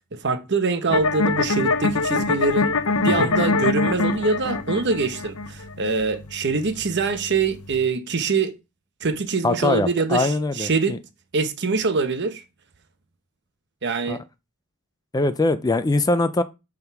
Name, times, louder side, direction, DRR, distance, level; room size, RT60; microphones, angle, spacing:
voice 1, 0.1-2.7 3.0-8.5 9.0-11.0 11.3-12.4 13.8-14.2, right 4 dB, 55° right, 1.0 m, -24 dB
sound 1, 0.9-7.8, left 3 dB, 85° left, 0.8 m, -24 dB
voice 2, 9.4-11.0 14.1-14.2 15.1-16.4, left 2 dB, 15° left, 0.4 m, -22 dB
7.7 x 3.7 x 5.8 m
head